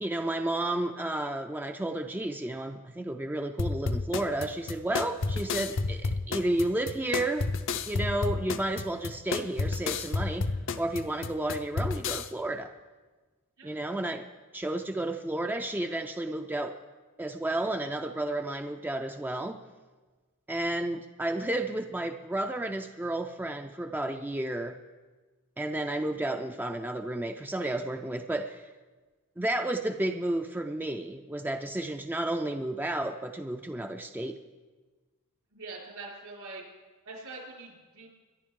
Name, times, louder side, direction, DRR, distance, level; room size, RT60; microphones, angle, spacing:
voice 1, 0.0-7.5 7.9-10.5 10.8-12.7 13.6-14.3 14.5-16.8 17.2-19.6 20.5-24.8 25.6-28.7 29.4-34.4, right 1 dB, 10° right, 5 dB, 0.4 m, -32 dB
sound 1, 3.6-12.3, left 3 dB, 60° left, 0.6 m, -31 dB
voice 2, 35.5-36.6 37.0-38.1, right 3 dB, 75° right, -3 dB, 5.1 m, -43 dB
23.5 x 10.5 x 3.7 m, 1.3 s
head